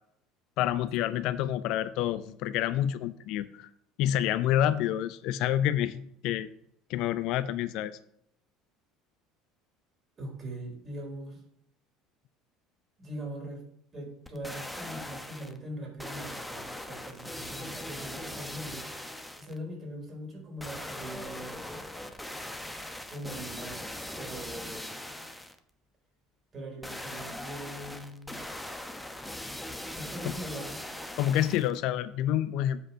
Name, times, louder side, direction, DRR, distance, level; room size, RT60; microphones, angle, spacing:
voice 1, 0.6-3.7 4.0-6.5 6.9-8.0 31.2-32.8, left 11 dB, 60° left, 14 dB, 0.5 m, -28 dB
voice 2, 10.2-11.4 13.0-13.6 13.9-19.1 19.4-21.7 23.1-25.0 26.5-28.4 29.9-30.8, right 1 dB, 35° right, 1 dB, 4.0 m, -41 dB
sound 1, 14.3-15.6 16.0-19.6 20.6-25.6 26.8-31.8 32.3-32.4, left 1 dB, 5° left, 1.1 m, -40 dB
8.3 x 4.9 x 5.8 m, 0.71 s
figure-of-eight pair, 65°, 0 cm